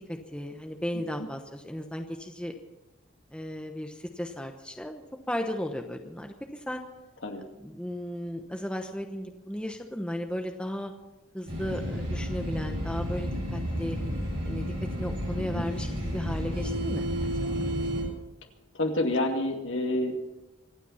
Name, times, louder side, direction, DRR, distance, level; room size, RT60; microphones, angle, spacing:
voice 1, 0.1-2.5 3.3-5.0 5.3-6.8 7.6-10.9 11.3-14.0 14.4-14.7 15.0-17.3, equal, 5° left, 4 dB, 0.9 m, -35 dB
voice 2, 0.9-1.3 7.2-7.5 15.4-15.7 18.7-20.1, left 1 dB, 60° left, 3 dB, 2.3 m, -29 dB
sound 1, 11.5-18.0, equal, 55° right, 7.7 m, -31 dB
25.5 x 9.2 x 5.7 m, 1.0 s
head